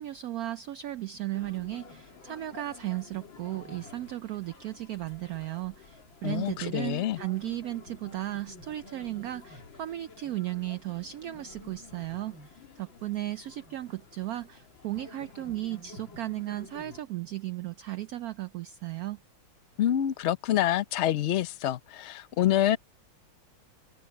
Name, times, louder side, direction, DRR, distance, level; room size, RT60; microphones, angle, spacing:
voice 1, 0.0-19.2, right 15 dB, 80° right, 0.8 m, -35 dB
sound 1, 1.3-17.0, left 4 dB, 80° left, 3.1 m, -50 dB
voice 2, 6.2-7.2 19.8-22.8, left 12 dB, 60° left, 0.7 m, -27 dB
omnidirectional pair, 2.1 m